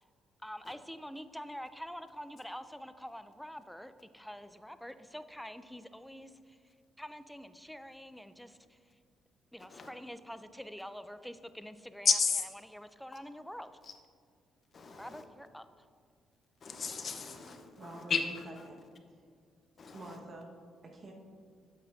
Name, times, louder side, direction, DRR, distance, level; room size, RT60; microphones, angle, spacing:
voice 1, 0.4-6.6 7.0-8.8 9.5-12.2 12.6-13.7 15.0-15.9, equal, ahead, 11 dB, 0.4 m, -46 dB
voice 2, 12.1-12.4 14.7-15.2 16.6-18.4 19.8-20.0, left 5 dB, 50° left, 5 dB, 0.8 m, -32 dB
voice 3, 17.8-18.8 19.9-20.6 20.8-21.1, right 2 dB, 45° right, 0 dB, 1.3 m, -48 dB
8.6 x 7.7 x 2.6 m, 2.2 s
cardioid pair, 90°, 0 cm